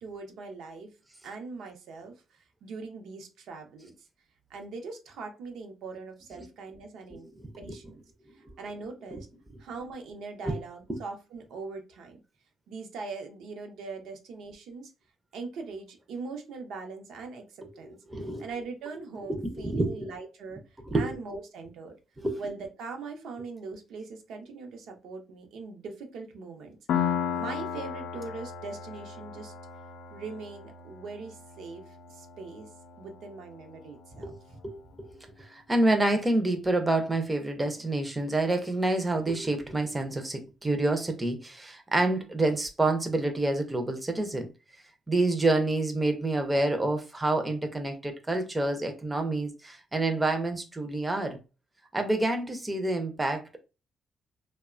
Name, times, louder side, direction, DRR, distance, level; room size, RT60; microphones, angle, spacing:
voice 1, 0.0-0.9 1.2-3.9 4.5-7.3 7.6-8.0 8.3-9.3 9.6-12.2 12.7-14.9 15.3-18.0 18.4-20.6 20.9-21.9 22.4-29.5 30.1-32.7 33.0-34.3, right 4 dB, 80° right, 0.5 m, -41 dB
voice 2, 7.1-7.9 9.1-9.2 10.4-10.6 10.9-11.0 17.7-17.8 18.1-18.5 19.3-20.0 20.8-21.1 22.2-22.4 34.2-34.4 34.6-44.5 45.1-51.4 51.9-53.6, right 2 dB, 10° right, 0.4 m, -28 dB
Piano, 26.9-34.3, left 8 dB, 75° left, 0.4 m, -35 dB
2.9 x 2.1 x 2.4 m
cardioid pair, 160°, 0 cm